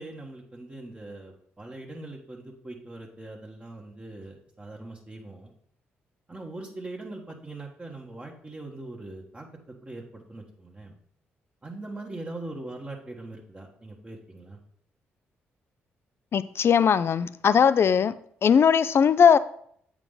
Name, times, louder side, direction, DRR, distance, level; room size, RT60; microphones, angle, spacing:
voice 1, 0.0-5.5 6.3-9.5 9.8-10.9 11.6-14.6, right 2 dB, 25° right, -1 dB, 1.3 m, -41 dB
voice 2, 16.3-18.1 18.4-19.4, left 7 dB, 50° left, 15 dB, 0.4 m, -19 dB
7.6 x 4.8 x 3.8 m, 0.65 s
hypercardioid pair, 50°, 5 cm